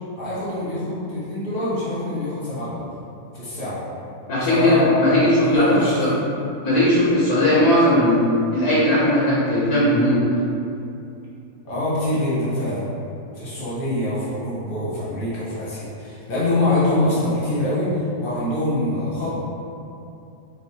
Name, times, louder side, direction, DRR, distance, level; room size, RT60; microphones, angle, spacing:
voice 1, 0.2-2.9 3.3-3.8 4.4-5.2 5.5-6.2 11.6-12.9 13.3-19.3, left 1 dB, 40° left, -9 dB, 0.9 m, -24 dB
voice 2, 4.3-5.7 6.0-6.1 6.6-8.2 8.5-10.2, left 1 dB, 65° left, -8 dB, 1.1 m, -18 dB
4.1 x 2.5 x 2.7 m, 2.7 s
omnidirectional pair, 1.9 m